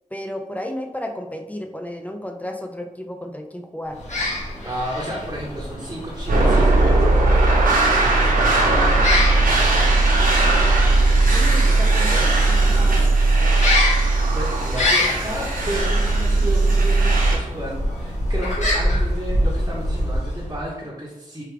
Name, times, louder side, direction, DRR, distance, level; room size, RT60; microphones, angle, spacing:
voice 1, 0.1-4.0 11.3-13.0, left 1 dB, 10° left, 4 dB, 0.4 m, -33 dB
sound 1, 3.9-20.7, left 1 dB, 55° left, 1.4 m, -27 dB
voice 2, 4.6-10.1 12.6-21.4, right 1 dB, 25° right, -6 dB, 0.8 m, -33 dB
sound 2, 6.3-17.4, right 2 dB, 80° right, 0.8 m, -17 dB
4.6 x 2.3 x 3.2 m, 1.1 s
wide cardioid pair, 100°, 14 cm